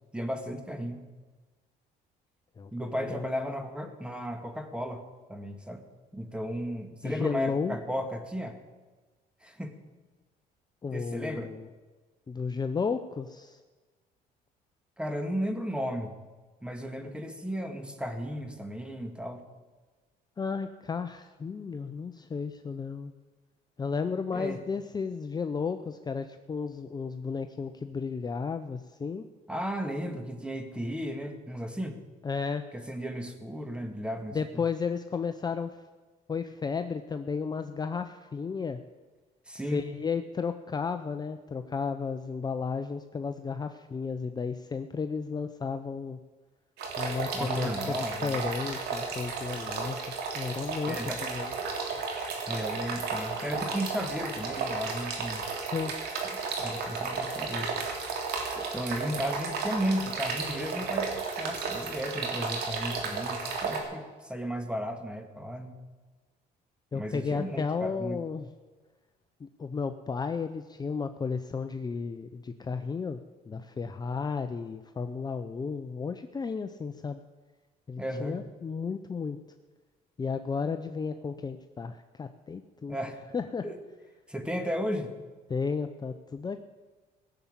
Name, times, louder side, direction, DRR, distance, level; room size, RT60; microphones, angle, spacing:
voice 1, 0.1-1.0 2.7-5.0 5.3-5.8 6.1-8.6 9.4-9.8 10.9-11.5 15.0-16.1 16.6-19.4 24.3-24.6 29.5-32.0 32.7-34.6 39.5-39.8 47.3-48.5 50.9-51.2 52.5-55.5 56.6-57.8 58.6-61.1 61.4-65.7 66.9-68.2 78.0-78.4 82.9-83.2 83.6-83.8 84.3-85.1, equal, 5° right, 6 dB, 1.9 m, -34 dB
voice 2, 2.6-3.2 7.0-7.8 10.8-11.7 12.3-13.6 20.4-23.1 23.8-29.2 32.2-32.6 34.3-35.7 36.3-38.8 39.7-46.2 47.0-50.0 50.3-51.0 51.2-51.5 55.6-55.9 66.9-68.5 69.4-73.2 73.5-77.2 77.9-79.4 80.2-83.0 83.3-83.7 85.5-86.6, left 5 dB, 25° left, 8 dB, 0.7 m, -33 dB
sound 1, 46.8-63.8, right 4 dB, 75° right, 3.1 m, -33 dB
17.5 x 7.2 x 8.8 m, 1.3 s
cardioid pair, 110°, 17 cm